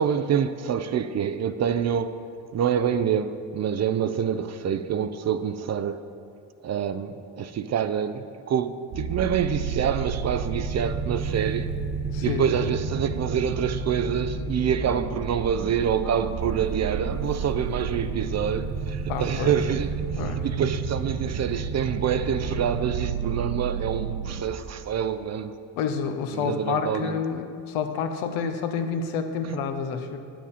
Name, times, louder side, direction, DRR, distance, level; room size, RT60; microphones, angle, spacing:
voice 1, 0.0-2.2 2.5-6.0 6.6-11.7 12.2-19.9 20.4-25.5 26.3-27.2 29.5-29.6, right 8 dB, 35° right, 11 dB, 0.4 m, -26 dB
sound 1, 8.9-24.4, right 5 dB, 55° right, 1.0 m, -31 dB
voice 2, 12.1-12.5 19.1-19.6 20.2-20.5 25.8-30.2, left 6 dB, 90° left, 6 dB, 0.8 m, -29 dB
8.6 x 7.5 x 4.1 m, 2.3 s
supercardioid pair, 80°, 47 cm